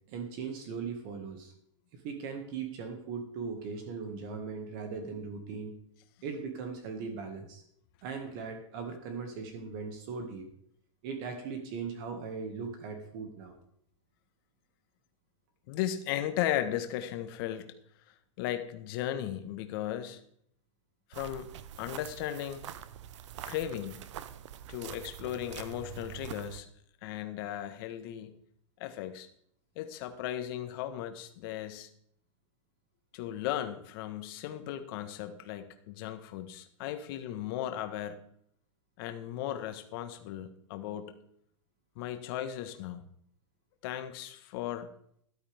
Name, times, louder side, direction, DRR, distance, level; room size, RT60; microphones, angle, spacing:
voice 1, 0.1-1.5 1.9-5.7 6.2-7.6 8.0-10.5 11.0-13.5, right 5 dB, 40° right, 4 dB, 2.0 m, -39 dB
voice 2, 15.7-17.7 18.4-20.2 21.1-21.5 21.8-22.6 23.5-24.0 24.7-26.7 27.0-28.3 28.8-29.3 29.7-31.9 33.1-38.2 39.0-41.2 42.0-43.1 43.8-44.9, left 11 dB, 45° left, 9 dB, 1.4 m, -36 dB
sound 1, 21.1-26.6, right 11 dB, 65° right, 0.9 m, -45 dB
13.5 x 12.0 x 3.6 m, 0.67 s
supercardioid pair, 155°, 17 cm